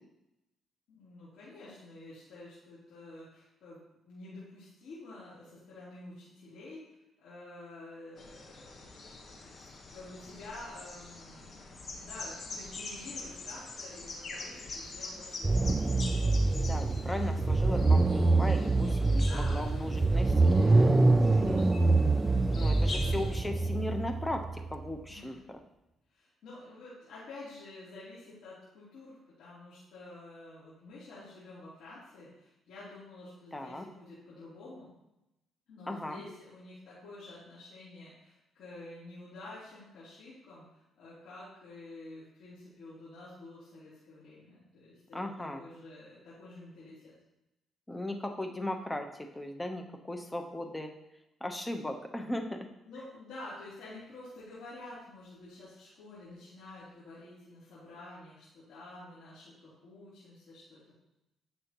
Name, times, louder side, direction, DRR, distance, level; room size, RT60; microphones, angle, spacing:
voice 1, 0.9-3.8 4.0-9.5 9.9-15.7 18.9-23.3 25.1-25.3 26.1-34.9 35.7-45.2 45.5-47.1 52.8-60.9, left 2 dB, 75° left, -11 dB, 3.4 m, -49 dB
sound 1, 8.2-23.4, left 3 dB, 50° left, 1.3 m, -45 dB
sound 2, 15.4-24.8, right 3 dB, 25° right, 0.4 m, -25 dB
voice 2, 16.5-20.6 22.6-25.6 33.5-33.8 35.9-36.2 45.1-45.6 47.9-50.9 51.4-52.7, left 1 dB, 15° left, 5 dB, 1.0 m, -37 dB
10.5 x 6.7 x 3.1 m, 0.91 s
cardioid pair, 90°, 0 cm